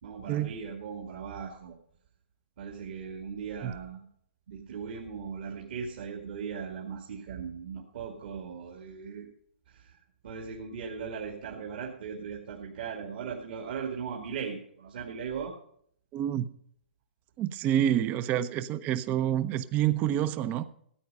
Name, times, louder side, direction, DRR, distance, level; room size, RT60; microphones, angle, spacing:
voice 1, 0.0-1.8 2.6-4.1 4.5-9.3 9.7-10.0 10.2-15.5, right 6 dB, 55° right, 1 dB, 2.2 m, -38 dB
voice 2, 16.1-16.5 17.4-20.7, right 11 dB, 25° right, 14 dB, 0.7 m, -28 dB
14.0 x 9.1 x 5.4 m, 0.65 s
hypercardioid pair, 135°, 6 cm